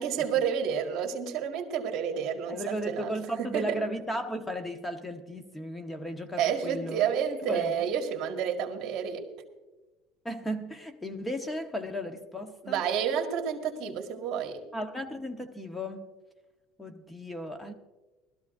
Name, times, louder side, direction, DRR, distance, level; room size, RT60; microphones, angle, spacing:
voice 1, 0.0-3.1 3.4-3.8 6.4-9.3 12.6-14.6, right 8 dB, 50° right, 1.9 m, -30 dB
voice 2, 2.5-7.1 7.5-7.9 10.2-12.9 14.7-16.1 16.8-17.7, equal, 10° left, 1.1 m, -35 dB
20.5 x 13.5 x 2.6 m
cardioid pair, 140°, 0 cm